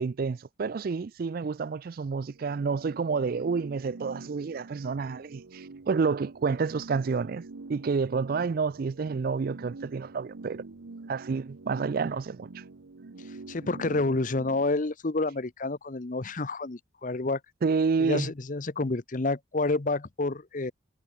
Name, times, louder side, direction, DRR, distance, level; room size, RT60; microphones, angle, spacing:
voice 1, 0.0-7.4 7.7-10.6 11.1-12.6 17.6-18.3, right 5 dB, 45° right, 0.4 m, -29 dB
sound 1, 2.2-14.6, right 3 dB, 85° right, 0.8 m, -46 dB
voice 2, 13.5-17.4 18.0-20.7, left 2 dB, 40° left, 0.8 m, -29 dB
head